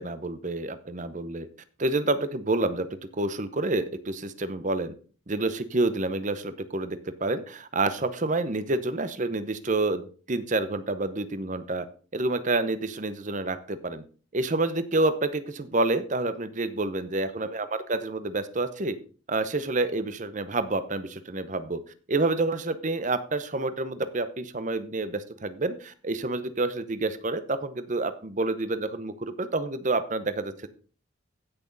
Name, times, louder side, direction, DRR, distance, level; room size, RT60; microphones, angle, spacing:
voice 1, 0.0-1.5 1.8-2.9 3.2-4.9 5.3-11.9 12.1-14.0 14.3-19.0 19.3-21.8 22.1-30.7, right 2 dB, 40° right, 12 dB, 0.9 m, -28 dB
15.5 x 6.3 x 4.0 m, 0.39 s
head